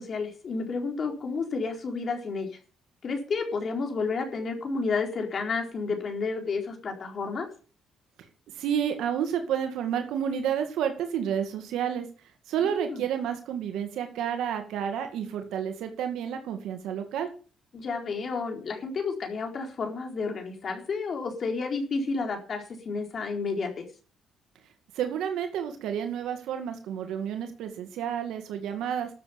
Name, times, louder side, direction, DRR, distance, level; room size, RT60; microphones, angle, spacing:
voice 1, 0.0-2.5 3.0-7.5 12.6-13.0 17.7-23.8, left 4 dB, 50° left, 3 dB, 4.2 m, -31 dB
voice 2, 8.6-12.1 12.5-17.3 25.0-29.1, right 8 dB, 85° right, 6 dB, 1.9 m, -30 dB
13.0 x 7.7 x 7.0 m, 0.39 s
cardioid pair, 90°, 0 cm